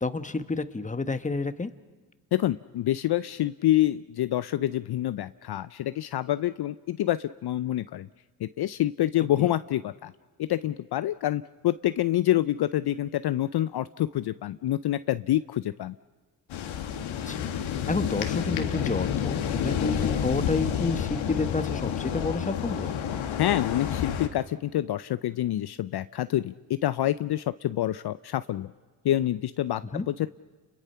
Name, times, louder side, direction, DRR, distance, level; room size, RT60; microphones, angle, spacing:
voice 1, 0.0-1.7 9.4-9.5 17.3-17.5 17.9-22.9 29.9-30.0, left 3 dB, 15° left, 11 dB, 1.3 m, -30 dB
voice 2, 2.3-8.1 8.4-10.1 10.4-15.9 23.4-28.7 29.0-30.3, left 13 dB, 55° left, 13 dB, 0.6 m, -27 dB
sound 1, 16.5-24.3, left 8 dB, 80° left, 1.9 m, -29 dB
30.0 x 22.0 x 5.8 m, 1.4 s
supercardioid pair, 65°, 46 cm